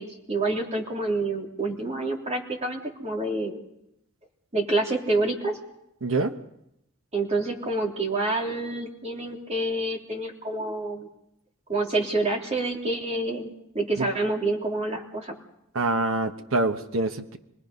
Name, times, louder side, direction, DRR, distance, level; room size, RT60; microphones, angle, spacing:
voice 1, 0.0-3.6 4.5-5.6 7.1-11.1 11.7-15.3, right 2 dB, 30° right, 0 dB, 3.2 m, -28 dB
voice 2, 6.0-6.3 14.0-14.1 15.7-17.4, right 2 dB, 70° right, 7 dB, 1.1 m, -25 dB
27.0 x 19.5 x 5.4 m, 0.82 s
head